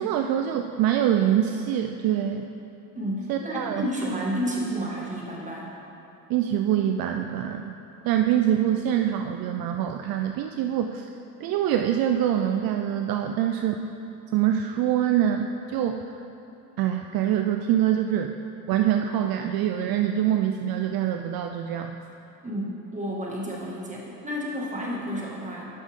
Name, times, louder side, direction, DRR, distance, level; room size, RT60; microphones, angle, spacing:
voice 1, 0.0-2.5 3.3-3.9 6.3-7.7 8.0-11.1 11.4-13.8 14.3-16.0 16.8-18.3 18.7-22.0, right 10 dB, 60° right, 5 dB, 0.5 m, -24 dB
voice 2, 3.0-5.7 22.4-25.7, equal, 20° right, -4 dB, 1.9 m, -31 dB
11.5 x 6.1 x 3.6 m, 2.8 s
cardioid pair, 105°, 40 cm